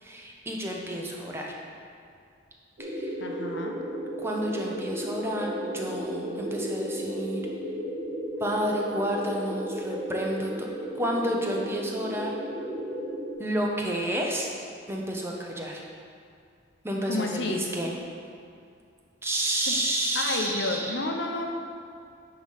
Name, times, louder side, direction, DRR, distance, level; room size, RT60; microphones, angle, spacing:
voice 1, 0.0-1.6 2.8-3.1 4.2-7.4 8.4-10.7 10.9-12.3 13.4-14.5 14.9-15.8 16.8-17.9 19.2-21.0, right 1 dB, 10° right, -1 dB, 0.7 m, -30 dB
sound 1, 2.8-13.3, equal, 55° right, 1.1 m, -34 dB
voice 2, 3.2-3.8 17.1-17.6 19.7-19.8 20.1-21.5, left 2 dB, 60° left, 2 dB, 0.7 m, -30 dB
9.4 x 3.9 x 5.6 m, 2.4 s
head